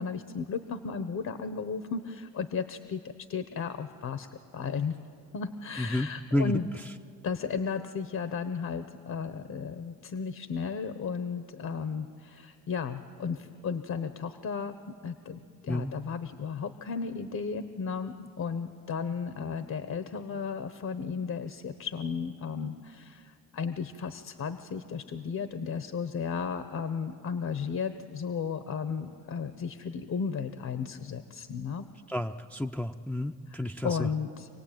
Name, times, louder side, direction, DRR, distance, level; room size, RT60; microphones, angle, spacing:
voice 1, 0.0-4.3 4.5-5.0 5.3-6.7 7.2-31.9 33.8-34.5, left 6 dB, 55° left, 10 dB, 1.2 m, -34 dB
voice 2, 5.8-6.6 15.7-15.9 32.1-34.1, left 1 dB, 5° left, 3 dB, 0.7 m, -31 dB
26.0 x 18.0 x 9.1 m, 2.3 s
supercardioid pair, 70°, 33 cm